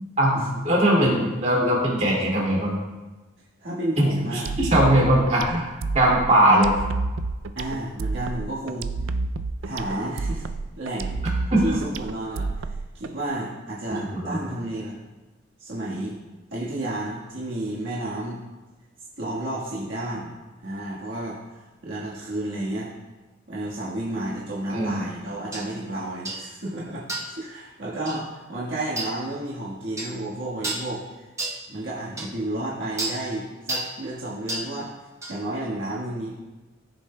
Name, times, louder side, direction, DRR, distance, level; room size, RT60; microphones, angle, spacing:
voice 1, 0.2-2.7 4.0-5.7 5.9-6.7 11.5-11.8 13.9-14.4 24.7-25.1, right 1 dB, 35° right, -4 dB, 2.3 m, -20 dB
voice 2, 3.6-4.5 5.1-5.2 7.5-8.9 9.6-10.4 10.8-11.2 11.6-15.0 15.6-16.2 16.5-18.4 19.2-20.3 20.6-22.9 23.5-31.3 31.7-34.9 35.3-36.4, right 1 dB, 65° right, -6 dB, 1.5 m, -31 dB
sound 1, 4.4-13.1, right 3 dB, 80° right, 0.4 m, -29 dB
sound 2, 25.5-25.7 26.3-26.5 27.1-27.4 28.1-28.2 29.0-29.1 30.0-30.2 30.6-30.9 31.4-31.6 32.2-32.3 33.0-33.2 33.7-33.9 34.5-34.7 35.2-35.4, right 2 dB, 15° right, 0.9 m, -30 dB
14.0 x 6.9 x 2.2 m, 1.2 s
head